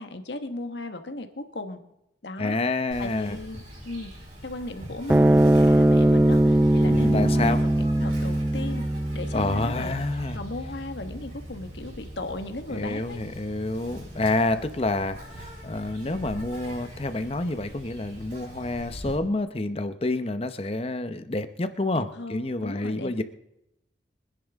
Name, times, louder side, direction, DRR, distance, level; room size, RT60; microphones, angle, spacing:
voice 1, 0.0-1.8 2.2-2.6 3.0-4.1 4.4-8.8 9.1-9.9 10.3-13.2 21.9-23.2, left 2 dB, 75° left, 7 dB, 1.4 m, -36 dB
voice 2, 2.4-3.4 6.9-7.6 9.3-10.4 12.7-23.2, left 2 dB, 35° left, 10 dB, 0.8 m, -28 dB
Insect, 2.9-19.2, equal, 45° right, 4.9 m, -43 dB
sound 1, 5.1-11.7, right 1 dB, 10° right, 0.5 m, -21 dB
24.0 x 10.5 x 3.6 m, 0.83 s
head